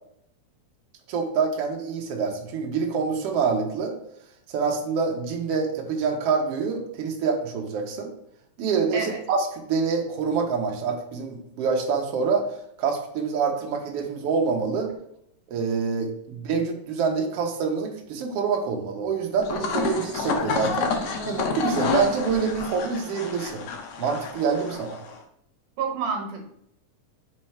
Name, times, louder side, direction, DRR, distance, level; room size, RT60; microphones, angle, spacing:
voice 1, 1.1-4.0 4.5-8.1 8.6-12.5 12.8-14.9 15.5-20.9 21.2-23.6 24.0-25.0, right 5 dB, 60° right, 1 dB, 1.8 m, -26 dB
sound 1, 19.4-25.2, left 5 dB, 70° left, 1.7 m, -29 dB
voice 2, 25.8-26.5, right 5 dB, 85° right, 3 dB, 2.8 m, -28 dB
6.2 x 4.4 x 4.4 m, 0.72 s
omnidirectional pair, 3.6 m